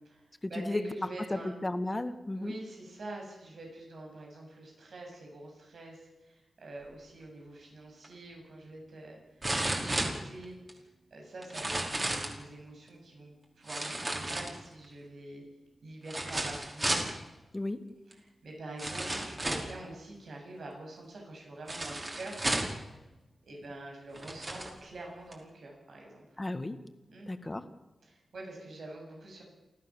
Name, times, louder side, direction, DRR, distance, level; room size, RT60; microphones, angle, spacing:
voice 1, 0.0-1.5 2.4-9.2 9.6-10.6 11.1-15.4 15.8-17.0 18.1-22.5 23.4-26.3 27.1-27.3 28.0-29.4, right 2 dB, 75° right, 0 dB, 7.8 m, -45 dB
voice 2, 0.5-0.9 1.3-2.5 17.5-17.8 26.4-26.8 27.3-27.6, left 2 dB, 25° left, 9 dB, 1.9 m, -33 dB
sound 1, 8.0-8.1 9.4-10.7 11.4-12.4 13.7-14.8 16.1-17.1 18.1-18.2 18.8-19.8 21.7-22.8 23.6-23.7 24.1-24.7 25.3-25.4, right 1 dB, 30° right, 5.2 m, -33 dB
29.5 x 14.5 x 7.4 m, 1.1 s
wide cardioid pair, 85°, 0 cm